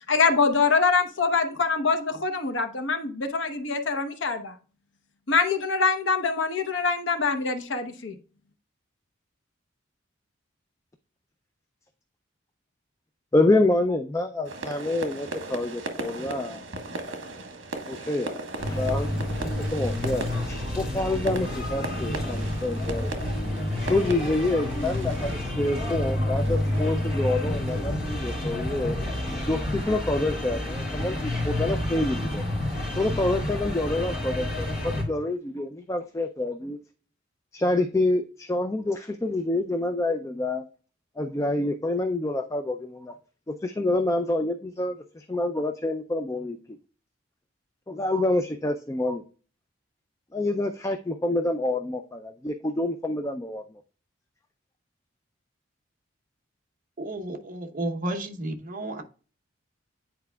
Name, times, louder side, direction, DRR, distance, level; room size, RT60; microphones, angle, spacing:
voice 1, 0.1-4.5 5.3-8.1, left 4 dB, 70° left, 7 dB, 0.9 m, -24 dB
voice 2, 13.3-16.6 17.9-18.4 18.7-19.1 19.7-23.1 23.8-29.0 29.5-32.5 33.0-36.8 37.5-40.6 41.2-43.1 43.5-46.6 47.9-49.2 50.3-53.6, left 2 dB, 15° left, 6 dB, 0.4 m, -27 dB
sound 1, 14.4-27.8, right 2 dB, 70° right, 1.2 m, -38 dB
sound 2, 18.6-35.0, left 1 dB, 50° left, 2.9 m, -29 dB
voice 3, 57.0-59.0, right 1 dB, 45° right, 4 dB, 0.8 m, -32 dB
9.6 x 4.5 x 2.3 m, 0.37 s
head